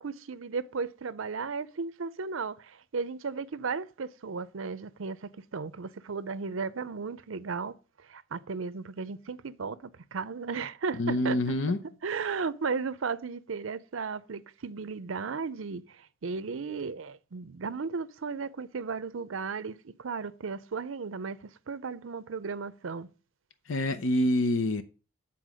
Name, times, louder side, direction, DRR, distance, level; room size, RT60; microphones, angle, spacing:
voice 1, 0.0-7.7 8.0-11.4 12.0-21.4 21.7-23.1, right 5 dB, 85° right, 0.6 m, -35 dB
voice 2, 11.0-11.8 23.7-24.8, left 1 dB, 70° left, 0.7 m, -26 dB
9.2 x 4.3 x 6.3 m
head